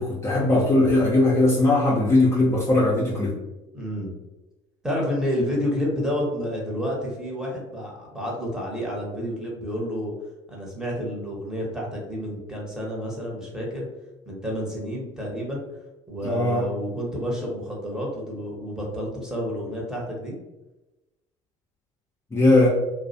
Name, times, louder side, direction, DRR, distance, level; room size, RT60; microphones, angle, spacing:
voice 1, 0.0-3.3 16.2-16.6 22.3-22.7, left 2 dB, 20° left, -6 dB, 0.6 m, -19 dB
voice 2, 3.7-4.1 4.8-10.1 10.5-13.9 14.2-15.6 16.1-20.3, equal, 5° right, -4 dB, 1.0 m, -29 dB
2.3 x 2.1 x 2.7 m, 1.0 s
hypercardioid pair, 65°, 16 cm